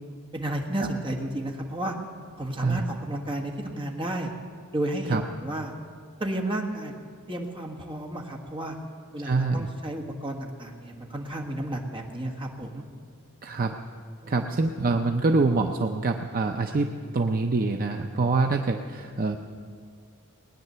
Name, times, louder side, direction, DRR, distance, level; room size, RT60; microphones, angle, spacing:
voice 1, 0.3-1.9 2.4-4.3 4.7-5.7 6.2-6.9 7.3-8.8 9.1-12.8 14.2-14.5, right 1 dB, 25° right, 0 dB, 1.7 m, -32 dB
voice 2, 9.2-9.7 13.4-13.8 14.3-16.9 17.1-19.4, right 3 dB, 45° right, 4 dB, 0.6 m, -25 dB
19.5 x 10.0 x 6.8 m, 2.1 s
head